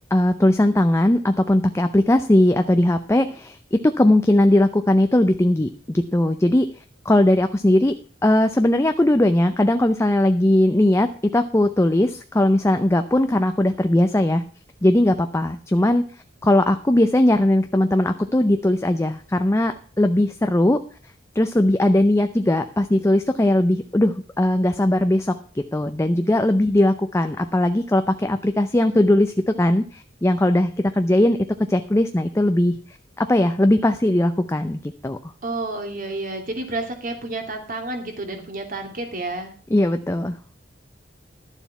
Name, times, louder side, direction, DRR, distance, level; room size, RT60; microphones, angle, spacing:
voice 1, 0.1-6.7 7.0-8.0 8.2-14.4 14.8-16.0 16.4-20.8 21.4-31.4 31.7-32.8 33.2-35.2 39.7-40.4, left 1 dB, 15° left, 7 dB, 0.6 m, -19 dB
voice 2, 35.4-39.5, right 2 dB, 50° right, 4 dB, 2.5 m, -30 dB
12.0 x 7.2 x 5.7 m, 0.41 s
head